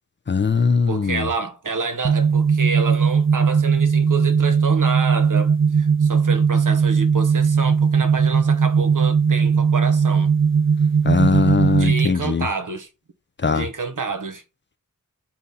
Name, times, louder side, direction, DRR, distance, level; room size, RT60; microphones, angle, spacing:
voice 1, 0.3-1.3 11.0-12.5 13.4-13.7, left 5 dB, 35° left, 0.4 m, -20 dB
voice 2, 0.9-10.3 11.7-12.9 13.5-14.4, right 4 dB, 70° right, 0.9 m, -28 dB
sound 1, 2.0-12.1, right 6 dB, 40° right, 0.4 m, -18 dB
4.1 x 2.8 x 3.8 m
wide cardioid pair, 40°, 33 cm